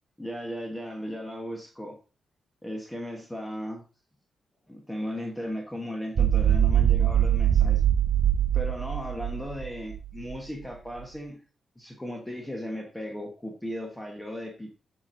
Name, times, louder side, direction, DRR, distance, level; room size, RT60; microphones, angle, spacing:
voice 1, 0.2-2.0 2.6-3.8 4.7-7.8 8.5-11.4 11.8-14.7, equal, 10° left, 2 dB, 1.1 m, -36 dB
sound 1, 6.2-10.4, right 10 dB, 60° right, 0.5 m, -23 dB
7.2 x 5.8 x 2.6 m, 0.34 s
cardioid pair, 95°, 0 cm